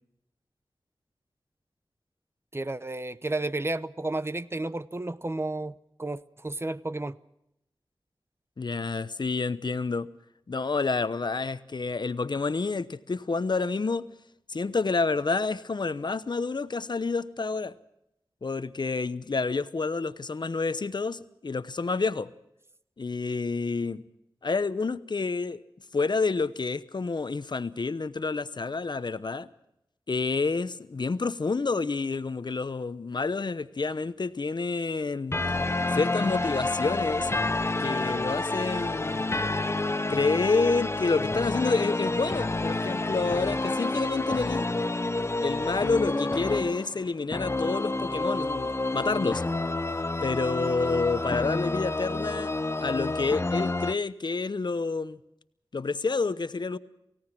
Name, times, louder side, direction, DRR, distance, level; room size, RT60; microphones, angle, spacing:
voice 1, 2.5-7.2, right 2 dB, 30° right, 0.8 m, -32 dB
voice 2, 8.6-10.1 10.5-14.1 14.5-17.8 18.4-22.3 23.0-24.0 24.4-25.6 25.9-29.5 30.1-35.4 35.9-37.3 37.8-39.3 40.1-44.7 45.4-49.4 50.2-52.5 52.8-55.2 55.7-56.8, left 4 dB, 60° left, 0.9 m, -28 dB
sound 1, 35.3-53.9, left 2 dB, 30° left, 0.8 m, -29 dB
28.5 x 17.0 x 6.0 m
wide cardioid pair, 55°, 9 cm